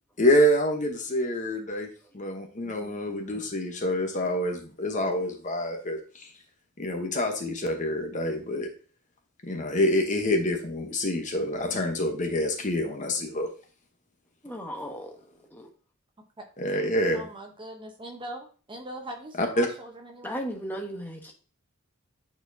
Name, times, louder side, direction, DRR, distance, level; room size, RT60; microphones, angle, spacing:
voice 1, 0.2-1.9 2.1-6.3 6.8-8.7 9.4-13.5 16.6-17.3 19.4-19.7, equal, 35° left, 4 dB, 0.9 m, -27 dB
voice 2, 2.6-3.4 14.4-15.2 15.5-15.7 20.2-21.3, equal, 10° left, 2 dB, 1.0 m, -37 dB
voice 3, 17.1-20.4, right 1 dB, 20° right, 3 dB, 0.9 m, -41 dB
8.4 x 4.2 x 2.7 m, 0.39 s
head